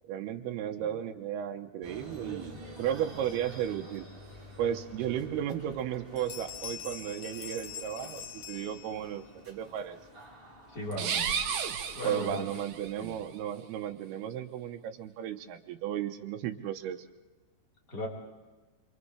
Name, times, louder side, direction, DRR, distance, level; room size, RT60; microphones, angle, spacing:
voice 1, 0.1-4.1 4.6-10.0 12.0-17.1, right 10 dB, 90° right, 4 dB, 3.0 m, -34 dB
sound 1, 1.8-13.3, right 1 dB, 15° right, 2.5 m, -50 dB
sound 2, 5.7-5.9 6.2-9.3, left 9 dB, 65° left, 1.8 m, -44 dB
voice 2, 10.7-11.3 11.9-12.4 13.0-13.2 17.9-18.1, left 1 dB, 25° left, -3 dB, 4.7 m, -37 dB
sound 3, 10.9-12.9, right 7 dB, 70° right, 2.9 m, -33 dB
29.0 x 26.5 x 3.4 m, 1.2 s
omnidirectional pair, 4.5 m